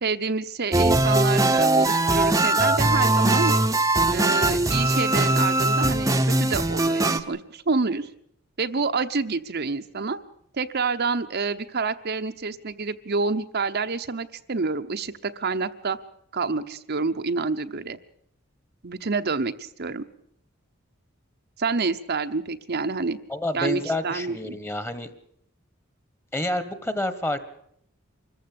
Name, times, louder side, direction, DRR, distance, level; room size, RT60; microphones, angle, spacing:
voice 1, 0.0-3.5 4.1-8.1 8.6-10.2 10.5-16.0 16.3-18.0 18.8-20.0 21.6-23.2 23.5-24.6, right 4 dB, 50° right, 8 dB, 0.9 m, -28 dB
sound 1, 0.7-7.2, right 2 dB, 15° right, 1.0 m, -21 dB
voice 2, 23.3-25.1 26.3-27.5, left 1 dB, 10° left, 12 dB, 1.6 m, -29 dB
25.0 x 14.5 x 8.8 m, 0.70 s
head